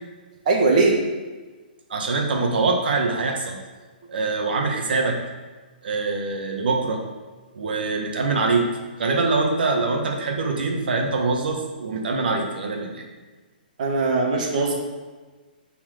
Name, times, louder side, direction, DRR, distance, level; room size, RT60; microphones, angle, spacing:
voice 1, 0.5-1.0 13.8-14.7, right 3 dB, 50° right, 0 dB, 1.9 m, -20 dB
voice 2, 1.9-3.6 4.1-5.2 5.8-7.0 7.5-8.7 9.0-13.0, right 3 dB, 75° right, 2 dB, 1.6 m, -24 dB
7.4 x 4.7 x 6.6 m, 1.3 s
hypercardioid pair, 160°, 5 cm